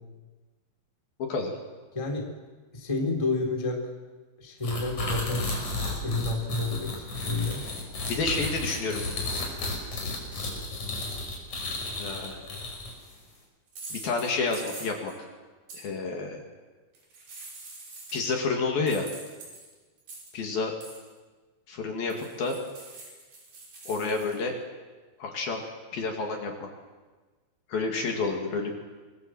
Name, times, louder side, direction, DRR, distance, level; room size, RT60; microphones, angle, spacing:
voice 1, 1.2-1.5 8.0-9.0 12.0-12.6 13.9-15.1 15.7-16.4 18.1-19.1 20.3-20.7 21.7-22.6 23.9-24.6 25.2-25.6 25.9-26.7 27.7-28.7, left 4 dB, 55° left, 2 dB, 3.8 m, -29 dB
voice 2, 1.9-2.3 2.7-3.8 4.4-5.5 6.0-6.9 7.2-7.6, left 3 dB, 10° left, 1 dB, 2.6 m, -29 dB
sound 1, 4.6-13.1, left 2 dB, 40° left, 6.7 m, -33 dB
sound 2, 12.4-12.7 13.7-15.2 15.7-15.8 17.0-18.4 18.9-20.5 20.8-21.1 22.1-24.4, right 2 dB, 50° right, 7.3 m, -44 dB
26.5 x 20.0 x 7.8 m, 1.3 s
omnidirectional pair, 5.5 m